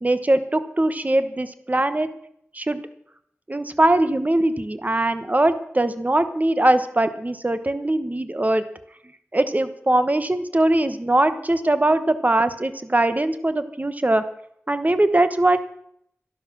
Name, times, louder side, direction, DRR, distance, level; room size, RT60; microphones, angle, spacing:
voice 1, 0.0-2.1 2.5-2.8 3.5-8.6 9.3-14.2 14.7-15.6, right 1 dB, 35° right, 11 dB, 1.1 m, -21 dB
12.5 x 12.0 x 6.1 m, 0.71 s
wide cardioid pair, 65°, 5 cm